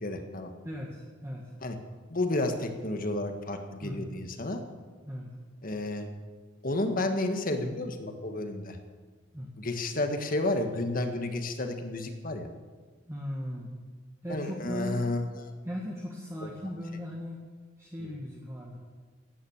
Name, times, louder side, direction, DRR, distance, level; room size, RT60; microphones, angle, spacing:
voice 1, 0.0-0.5 1.6-1.8 2.1-4.6 5.6-6.1 6.6-8.8 9.6-12.5 14.3-15.5 16.4-16.5 18.0-18.1, left 2 dB, 45° left, 6 dB, 1.6 m, -31 dB
voice 2, 0.6-1.5 3.8-4.1 5.1-5.3 9.3-9.5 13.1-13.7 14.2-15.0 15.6-17.4 17.8-18.8, equal, 15° right, -3 dB, 1.8 m, -38 dB
16.0 x 10.5 x 7.3 m, 1.5 s
head